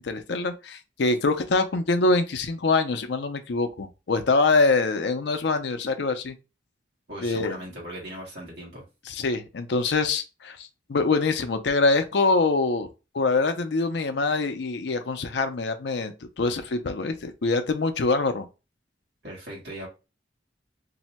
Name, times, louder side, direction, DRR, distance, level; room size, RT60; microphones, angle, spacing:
voice 1, 0.0-6.3 7.2-7.6 9.1-12.9 13.1-18.5, left 3 dB, 70° left, 0.5 m, -24 dB
voice 2, 7.1-8.8 19.2-19.9, right 1 dB, 65° right, 1.2 m, -38 dB
2.7 x 2.1 x 4.0 m
head